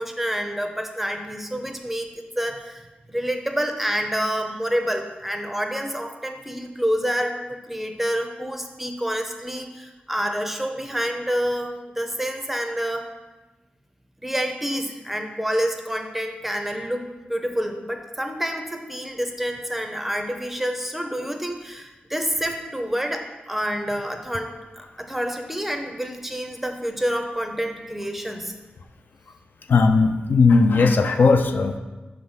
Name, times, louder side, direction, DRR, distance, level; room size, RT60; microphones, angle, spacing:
voice 1, 0.0-2.1 2.4-13.1 14.2-28.5, equal, 5° right, 5 dB, 0.5 m, -28 dB
voice 2, 29.7-31.8, left 4 dB, 70° left, 6 dB, 0.4 m, -17 dB
5.8 x 3.3 x 5.5 m, 1.1 s
wide cardioid pair, 135°, 3 cm